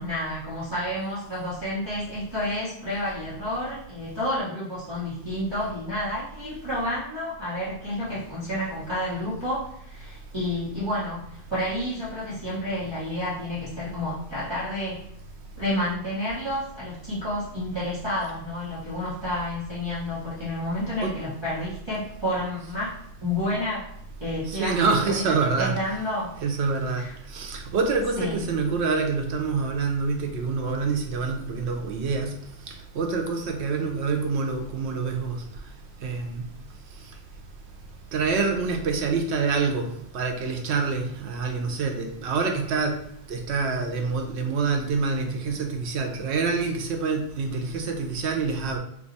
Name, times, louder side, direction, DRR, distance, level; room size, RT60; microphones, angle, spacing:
voice 1, 0.0-15.1 15.6-23.9 24.2-26.3 27.0-27.1 28.2-28.4, left 1 dB, 25° right, 0.9 m, -30 dB
voice 2, 24.5-25.8 26.4-27.0 27.3-32.4 32.7-35.4 36.0-36.4 38.1-39.9 40.1-43.0 43.3-48.8, right 4 dB, 85° right, 0.9 m, -26 dB
2.7 x 2.3 x 3.9 m
omnidirectional pair, 1.1 m